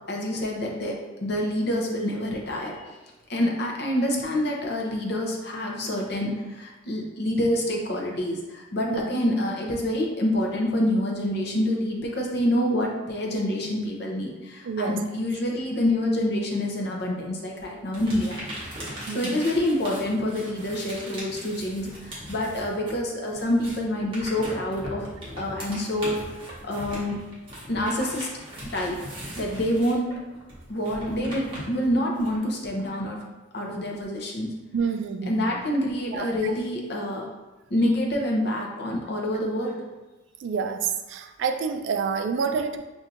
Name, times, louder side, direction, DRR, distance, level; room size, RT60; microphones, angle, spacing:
voice 1, 0.1-3.0 3.3-18.5 18.9-25.1 25.4-26.2 26.6-27.2 27.7-28.3 28.7-29.0 29.3-30.1 30.7-33.2 33.5-34.5 35.3-37.3 37.7-39.8, left 1 dB, 55° left, -1 dB, 0.7 m, -27 dB
voice 2, 14.6-15.0 19.1-19.4 34.7-35.5 36.1-36.5 40.4-42.8, right 6 dB, 70° right, 7 dB, 0.3 m, -28 dB
sound 1, 17.9-23.0 23.3-32.4, equal, 25° right, 1.2 m, -39 dB
5.8 x 2.6 x 2.5 m, 1.1 s
head